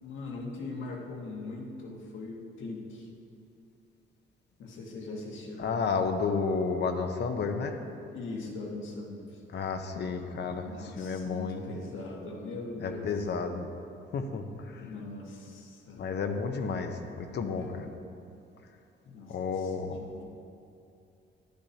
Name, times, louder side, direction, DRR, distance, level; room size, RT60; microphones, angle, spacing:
voice 1, 0.0-3.1 4.6-5.7 8.1-9.4 10.4-13.1 14.7-16.0 17.5-17.9 19.0-20.2, left 3 dB, 75° left, -1 dB, 1.6 m, -41 dB
voice 2, 5.6-7.8 9.5-11.6 12.8-13.7 14.1-14.9 16.0-17.9 19.3-20.0, left 5 dB, 60° left, 6 dB, 0.8 m, -32 dB
12.0 x 10.0 x 2.8 m, 2.6 s
cardioid pair, 90°, 20 cm